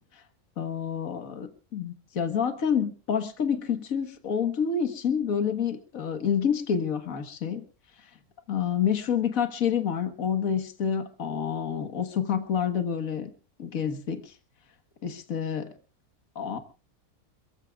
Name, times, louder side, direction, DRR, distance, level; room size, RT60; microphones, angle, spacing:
voice 1, 0.6-7.6 8.5-13.3 13.6-14.3 15.0-15.7 16.4-16.6, left 7 dB, 70° left, 8 dB, 1.8 m, -28 dB
27.5 x 15.0 x 2.4 m, 0.34 s
omnidirectional pair, 1.5 m